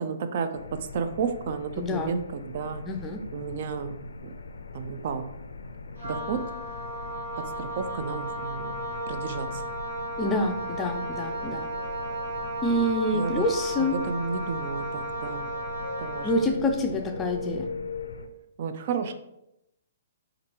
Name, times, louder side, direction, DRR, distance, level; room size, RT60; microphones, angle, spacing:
voice 1, 0.0-2.8 3.3-4.0 4.2-4.3 4.7-5.3 6.0-6.4 7.6-8.8 9.1-9.6 13.1-13.4 13.8-15.5 16.0-16.5 18.6-19.1, right 5 dB, 55° right, 9 dB, 0.3 m, -32 dB
sound 1, 0.5-18.3, left 4 dB, 85° left, 0.4 m, -40 dB
voice 2, 1.8-2.1 2.9-3.2 10.2-11.7 12.6-14.0 16.2-17.7, left 1 dB, 15° left, 4 dB, 0.4 m, -27 dB
Wind instrument woodwind instrument, 6.0-16.5, right 2 dB, 80° right, 1.1 m, -34 dB
4.3 x 2.5 x 3.0 m, 0.85 s
hypercardioid pair, 135°, 0 cm